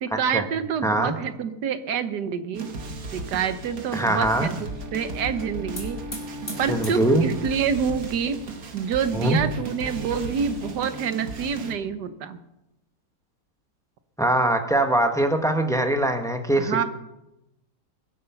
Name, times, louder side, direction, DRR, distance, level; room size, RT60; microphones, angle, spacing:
voice 1, 0.0-2.7 3.1-6.0 6.6-8.4 8.7-12.4 16.6-16.8, right 7 dB, 85° right, 11 dB, 1.6 m, -27 dB
voice 2, 0.8-1.2 3.9-4.5 6.7-7.3 9.1-9.4 14.2-16.8, right 1 dB, ahead, 5 dB, 1.0 m, -22 dB
sound 1, 2.5-11.7, right 2 dB, 60° right, 1.8 m, -35 dB
Hiss / Fire, 4.1-10.9, left 1 dB, 30° left, 4.1 m, -44 dB
21.5 x 8.0 x 5.9 m, 0.91 s
omnidirectional pair, 1.7 m